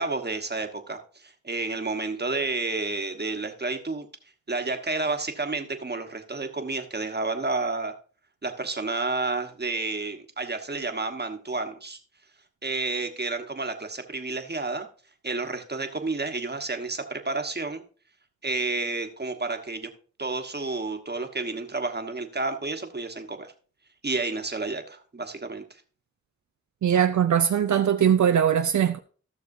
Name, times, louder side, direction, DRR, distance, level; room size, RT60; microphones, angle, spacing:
voice 1, 0.0-4.1 4.5-7.9 8.4-12.0 12.6-14.9 15.2-17.8 18.4-19.9 20.2-23.5 24.0-25.7, right 3 dB, 35° right, 1.2 m, -30 dB
voice 2, 26.8-29.0, right 9 dB, 75° right, 0.4 m, -21 dB
15.0 x 6.5 x 2.6 m
wide cardioid pair, 55°, 29 cm